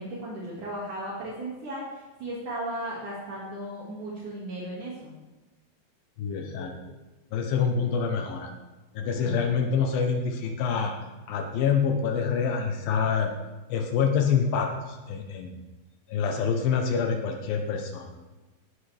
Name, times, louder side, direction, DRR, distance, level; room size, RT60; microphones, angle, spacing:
voice 1, 0.0-1.9 2.2-5.1 9.2-9.4, right 1 dB, 60° right, -5 dB, 3.7 m, -35 dB
voice 2, 6.2-6.9 7.3-8.5 9.0-10.9 11.3-13.3 13.7-15.6 16.1-18.2, left 6 dB, 80° left, 3 dB, 2.8 m, -26 dB
18.5 x 12.0 x 3.5 m, 1.1 s
omnidirectional pair, 4.1 m